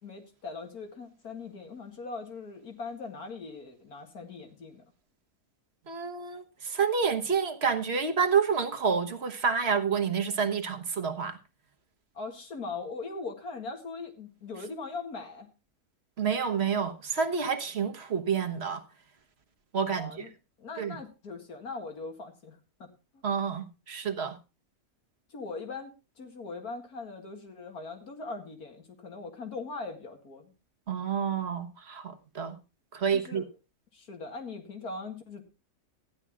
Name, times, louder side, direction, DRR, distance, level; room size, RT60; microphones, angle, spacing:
voice 1, 0.0-4.8 12.1-15.5 19.9-20.3 20.6-22.9 23.1-23.2 25.3-30.5 33.1-33.5 33.9-35.4, left 3 dB, 90° left, 2.6 m, -40 dB
voice 2, 5.9-11.4 16.2-18.8 19.7-20.3 20.8-21.0 23.2-24.4 30.9-32.6 32.9-33.4, right 6 dB, 45° right, 1.4 m, -29 dB
14.5 x 10.5 x 3.6 m
omnidirectional pair, 1.6 m